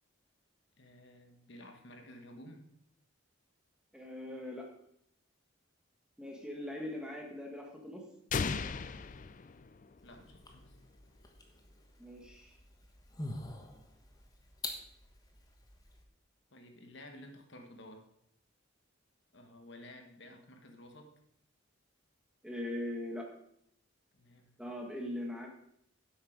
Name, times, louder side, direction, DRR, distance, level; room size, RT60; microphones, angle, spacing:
voice 1, 0.8-2.6 10.0-10.8 16.5-18.0 19.3-21.1 24.1-24.6, left 1 dB, 55° left, 4 dB, 1.4 m, -53 dB
voice 2, 3.9-4.7 6.2-8.0 12.0-12.6 22.4-23.3 24.6-25.5, left 1 dB, 5° right, 0 dB, 1.6 m, -41 dB
sound 1, 8.3-10.2, left 5 dB, 35° left, 0.4 m, -36 dB
sound 2, 10.0-16.0, left 2 dB, 15° left, 1.2 m, -47 dB
10.5 x 8.1 x 5.1 m, 0.73 s
head